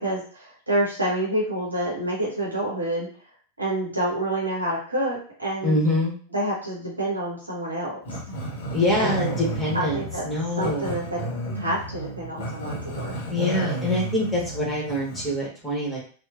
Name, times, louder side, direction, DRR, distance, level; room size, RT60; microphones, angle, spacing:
voice 1, 0.0-3.1 3.6-5.8 6.3-8.0 8.9-9.3 9.7-10.3 10.6-11.2 11.5-13.2, right 1 dB, 80° right, -5 dB, 0.7 m, -28 dB
voice 2, 5.6-6.1 8.7-10.9 13.3-16.1, left 1 dB, 5° left, -5 dB, 1.1 m, -25 dB
Growling, 8.0-15.4, right 1 dB, 55° left, 0.7 m, -32 dB
2.8 x 2.1 x 2.3 m, 0.42 s
figure-of-eight pair, 90°, 0 cm